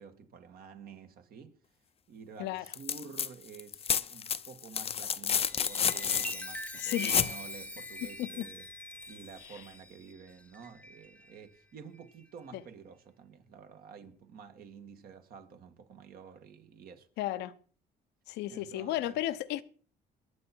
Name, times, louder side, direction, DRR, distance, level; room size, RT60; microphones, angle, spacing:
voice 1, 0.0-1.6 2.1-8.7 9.1-17.1 18.5-19.2, right 6 dB, 60° right, 2.2 m, -50 dB
sound 1, 2.7-3.3 3.5-7.4 9.0-9.1, left 8 dB, 35° left, 0.7 m, -30 dB
Chime, 5.4-11.4 11.9-12.2, left 1 dB, 10° left, 1.0 m, -43 dB
voice 2, 6.8-7.2 8.2-8.4 17.2-17.5 18.3-19.6, left 14 dB, 85° left, 0.9 m, -33 dB
21.5 x 8.7 x 4.6 m
cardioid pair, 110°, 17 cm